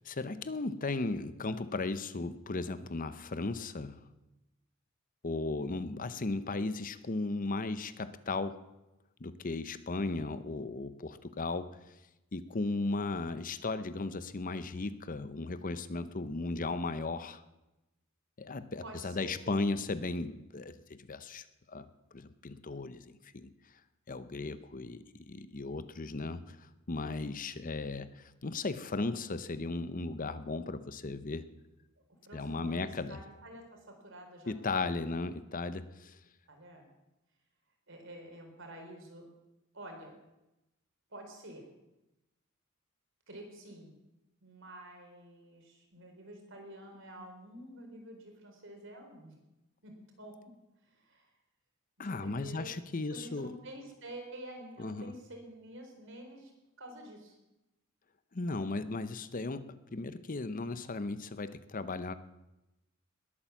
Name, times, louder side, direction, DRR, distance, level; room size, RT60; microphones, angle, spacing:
voice 1, 0.0-4.1 5.2-8.6 9.2-11.8 12.3-17.4 18.4-21.9 22.1-23.0 23.3-23.5 24.1-26.6 26.9-31.5 32.3-33.2 34.5-36.2 52.0-53.5 54.8-55.1 58.3-62.1, left 3 dB, 40° left, 13 dB, 0.8 m, -36 dB
voice 2, 18.8-19.4 32.2-35.2 36.5-36.9 37.9-39.2 39.7-40.1 41.1-41.7 43.3-44.0 44.4-49.3 49.8-50.5 50.9-51.3 52.0-52.7 53.1-56.5 56.8-57.4, right 1 dB, 65° right, 3 dB, 4.3 m, -49 dB
20.5 x 9.0 x 7.2 m, 0.96 s
head